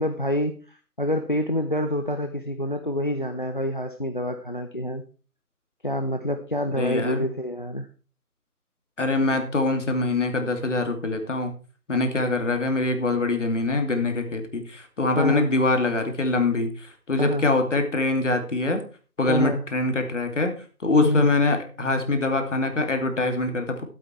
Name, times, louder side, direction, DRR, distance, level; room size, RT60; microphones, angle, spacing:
voice 1, 0.0-5.0 5.8-7.9 15.2-15.5 17.2-17.5 19.3-19.6 21.0-21.3, equal, 35° left, 8 dB, 0.7 m, -27 dB
voice 2, 6.7-7.3 9.0-11.5 11.9-18.8 19.2-20.5 20.8-23.8, left 2 dB, 50° left, 6 dB, 2.6 m, -24 dB
13.0 x 8.4 x 4.5 m, 0.36 s
figure-of-eight pair, 165°, 46 cm